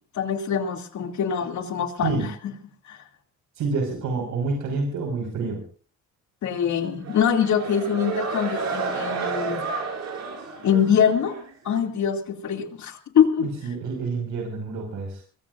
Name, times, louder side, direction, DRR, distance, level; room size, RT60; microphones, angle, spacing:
voice 1, 0.1-2.1 2.9-3.0 6.4-9.6 10.6-11.4 11.6-13.5, left 8 dB, 70° left, 4 dB, 2.8 m, -23 dB
voice 2, 3.5-5.6 13.4-15.2, right 4 dB, 85° right, 2 dB, 5.6 m, -28 dB
sound 1, 7.0-11.5, right 5 dB, 60° right, 6.3 m, -31 dB
24.5 x 21.5 x 2.6 m, 0.41 s
cardioid pair, 90°, 30 cm